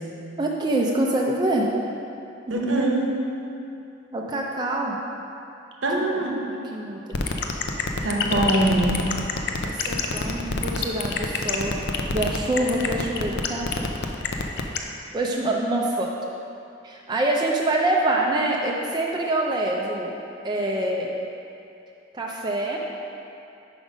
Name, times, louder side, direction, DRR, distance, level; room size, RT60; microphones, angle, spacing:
voice 1, 0.4-1.7 2.5-2.8 4.1-5.0 6.0-7.5 9.7-11.7 12.1-13.6 15.1-16.1 16.8-20.2 20.4-21.1 22.1-22.8, right 1 dB, 20° right, -2 dB, 0.4 m, -25 dB
voice 2, 2.5-3.1 5.8-6.4 8.0-9.1, right 1 dB, 75° right, -1 dB, 0.9 m, -23 dB
sound 1, 7.1-14.8, left 4 dB, 60° left, 0.5 m, -25 dB
5.2 x 5.1 x 5.0 m, 2.7 s
head